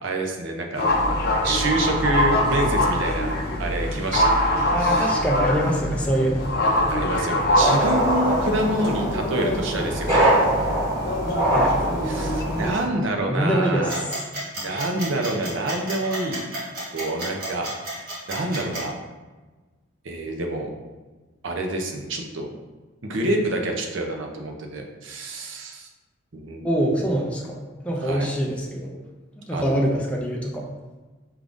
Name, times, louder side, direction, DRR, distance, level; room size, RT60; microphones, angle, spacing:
voice 1, 0.0-0.9 1.4-3.3 3.6-4.5 4.8-5.2 6.9-10.3 12.0-14.1 14.6-16.4 16.9-19.0 20.0-20.7 21.4-22.5 23.0-25.9 26.3-26.7 28.0-28.3 29.5-30.0, right 2 dB, 70° right, 2 dB, 0.6 m, -27 dB
sound 1, 0.7-12.7, left 1 dB, 50° left, 0.6 m, -24 dB
voice 2, 4.7-6.5 11.5-11.8 13.3-14.0 26.6-29.0 29.5-30.7, right 1 dB, 5° left, -2 dB, 0.4 m, -24 dB
sound 2, 7.6-12.8, right 1 dB, 20° right, 1.4 m, -23 dB
sound 3, 13.9-18.8, right 1 dB, 45° right, 1.3 m, -32 dB
4.8 x 3.5 x 2.5 m, 1.3 s
head